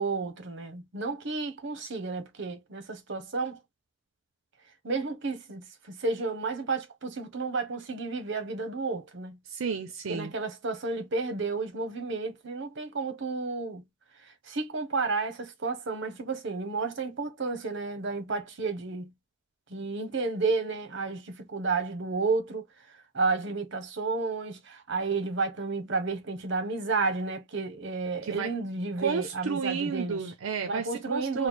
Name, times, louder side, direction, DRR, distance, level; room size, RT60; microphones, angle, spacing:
voice 1, 0.0-3.6 4.8-9.4 10.1-13.8 14.2-19.1 19.7-22.7 23.1-30.2 30.6-31.5, right 4 dB, 60° right, 0.9 m, -31 dB
voice 2, 9.5-10.3 28.2-28.5 29.0-31.5, right 6 dB, 80° right, 0.5 m, -32 dB
3.1 x 2.2 x 4.2 m
head